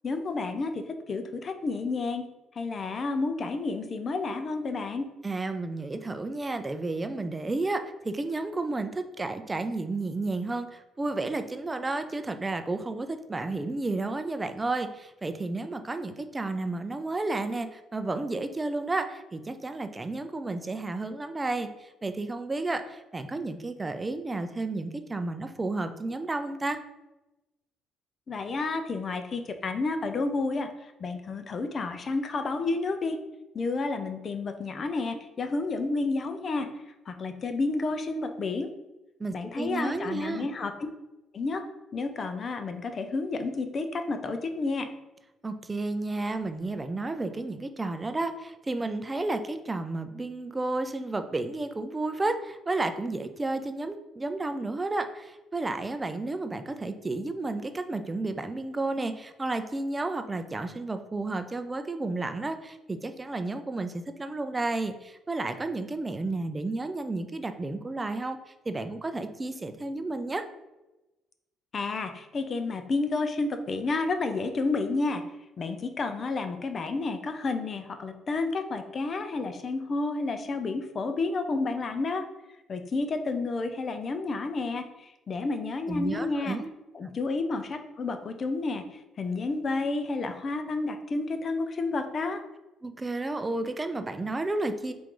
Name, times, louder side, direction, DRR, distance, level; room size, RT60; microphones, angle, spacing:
voice 1, 0.0-2.2 2.6-5.1 28.3-30.7 31.0-33.2 33.5-36.7 37.1-38.7 39.3-40.7 41.3-41.6 41.9-44.9 71.7-75.2 75.6-82.2 82.7-86.6 86.9-88.8 89.2-92.4, left 3 dB, 45° left, 8 dB, 0.5 m, -30 dB
voice 2, 5.2-26.8 39.2-40.5 45.4-70.4 85.9-86.7 92.8-94.9, right 2 dB, 25° right, 8 dB, 0.4 m, -32 dB
4.4 x 2.5 x 3.7 m, 1.0 s
supercardioid pair, 65°, 0 cm